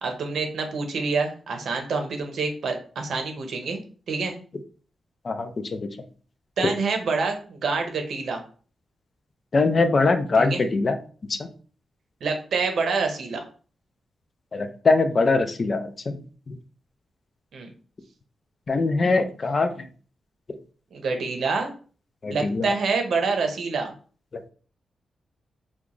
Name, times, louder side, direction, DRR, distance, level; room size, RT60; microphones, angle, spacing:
voice 1, 0.0-3.8 4.1-4.3 6.6-8.4 10.3-10.6 12.2-13.4 17.5-17.7 20.9-21.7 22.3-23.9, right 4 dB, 75° right, 4 dB, 0.7 m, -27 dB
voice 2, 5.3-5.9 9.5-10.9 14.5-16.2 16.5-16.6 18.7-19.7 22.2-22.6, left 3 dB, 40° left, 8 dB, 0.4 m, -22 dB
2.9 x 2.3 x 3.7 m, 0.41 s
cardioid pair, 100°, 0 cm